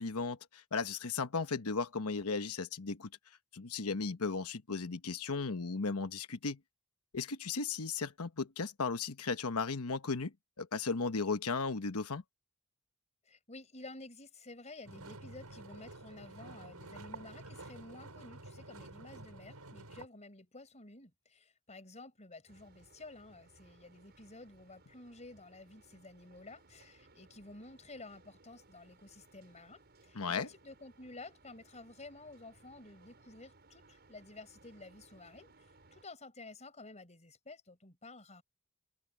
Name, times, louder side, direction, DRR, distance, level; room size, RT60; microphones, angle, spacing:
voice 1, 0.0-3.1 3.5-6.6 7.1-12.2 30.1-30.5, left 4 dB, 80° left, 1.1 m, -36 dB
voice 2, 13.2-38.4, left 2 dB, 30° left, 4.7 m, -52 dB
sound 1, 14.8-20.1, right 2 dB, 90° right, 6.0 m, -50 dB
sound 2, 22.5-36.1, right 3 dB, 50° right, 5.6 m, -63 dB
open air
head